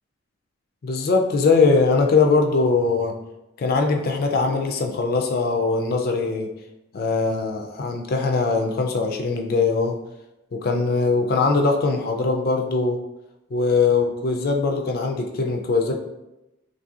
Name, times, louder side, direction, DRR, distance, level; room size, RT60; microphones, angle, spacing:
voice 1, 0.8-3.1 3.6-6.5 6.9-10.0 10.5-13.0 13.5-15.9, left 4 dB, 45° left, 3 dB, 0.3 m, -21 dB
3.2 x 2.6 x 2.4 m, 0.94 s
head